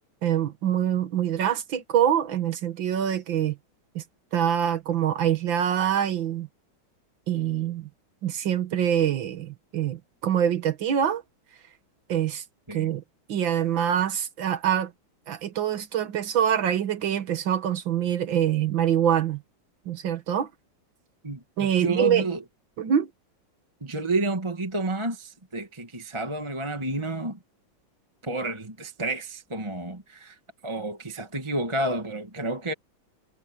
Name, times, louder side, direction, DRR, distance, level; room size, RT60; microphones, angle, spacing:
voice 1, 0.2-3.6 4.0-4.1 4.3-6.5 7.3-7.9 8.2-11.2 12.1-12.4 12.7-13.0 13.3-14.9 15.3-19.4 19.9-20.5 21.6-22.3 22.8-23.1, right 9 dB, 70° right, 2.1 m, -25 dB
voice 2, 21.2-22.4 23.8-27.4 28.2-30.4 30.6-32.7, right 2 dB, 15° right, 1.5 m, -30 dB
omnidirectional pair, 2.2 m